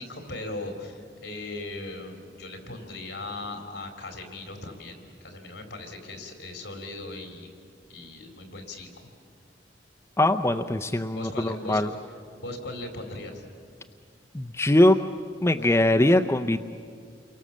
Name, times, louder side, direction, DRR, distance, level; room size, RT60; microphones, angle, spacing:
voice 1, 0.0-7.5 7.9-8.9 11.2-12.0 12.4-13.4, left 2 dB, 65° left, 4 dB, 4.2 m, -38 dB
voice 2, 10.2-11.9 14.3-15.0 15.4-16.6, left 1 dB, 15° left, 5 dB, 0.6 m, -21 dB
29.5 x 23.5 x 7.5 m, 2.1 s
head